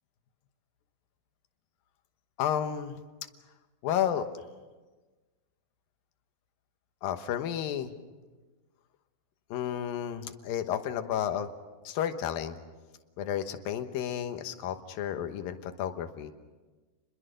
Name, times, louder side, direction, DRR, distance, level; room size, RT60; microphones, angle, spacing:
voice 1, 2.4-3.0 3.8-4.4 7.0-7.9 9.5-11.5 11.8-12.6 13.2-16.3, left 9 dB, 75° left, 8 dB, 2.8 m, -32 dB
28.5 x 21.5 x 6.6 m, 1.3 s
omnidirectional pair, 4.2 m